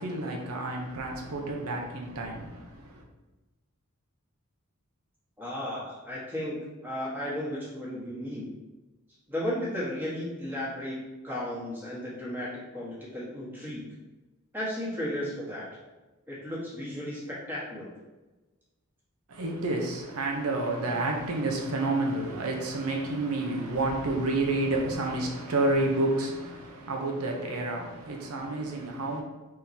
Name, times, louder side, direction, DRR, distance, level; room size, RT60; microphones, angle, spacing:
voice 1, 0.0-3.0 19.3-29.2, right 2 dB, 85° right, 0.7 m, -30 dB
voice 2, 5.4-8.5 9.3-11.0 11.2-13.8 14.5-15.7 16.3-17.9, left 1 dB, 10° right, 1.2 m, -34 dB
4.3 x 3.7 x 2.7 m
head